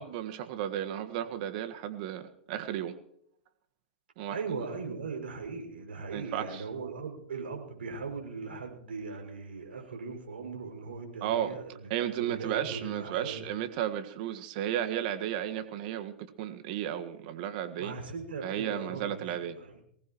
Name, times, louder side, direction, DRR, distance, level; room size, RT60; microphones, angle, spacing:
voice 1, 0.0-2.9 4.2-4.4 6.1-6.6 11.2-11.6 11.9-17.9 18.4-19.6, right 10 dB, 55° right, 8 dB, 1.7 m, -33 dB
voice 2, 4.3-13.5 17.8-19.8, right 4 dB, 80° right, 2 dB, 6.5 m, -39 dB
23.5 x 19.0 x 3.1 m, 0.72 s
hypercardioid pair, 110°, 6 cm